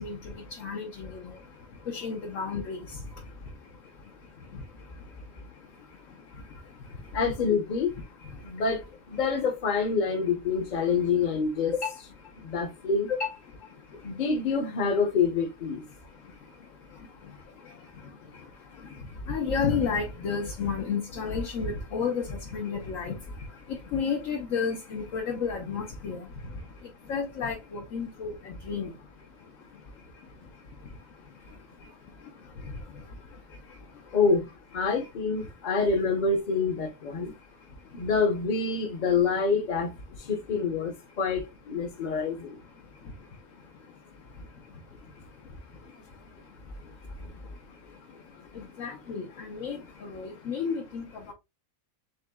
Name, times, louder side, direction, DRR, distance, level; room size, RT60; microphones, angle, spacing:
voice 1, 0.0-7.2 8.2-8.6 11.7-12.8 13.1-14.2 15.9-34.2 34.8-35.1 35.4-35.5 37.2-38.1 41.9-42.1 42.7-51.3, left 5 dB, 70° left, 1.2 m, -36 dB
voice 2, 7.1-7.9 8.4-8.8 9.1-11.8 12.4-13.1 14.0-15.8 34.1-34.5 34.7-37.3 37.9-39.9 40.3-42.5, left 5 dB, 40° left, 0.8 m, -26 dB
5.2 x 3.6 x 2.2 m
omnidirectional pair, 1.4 m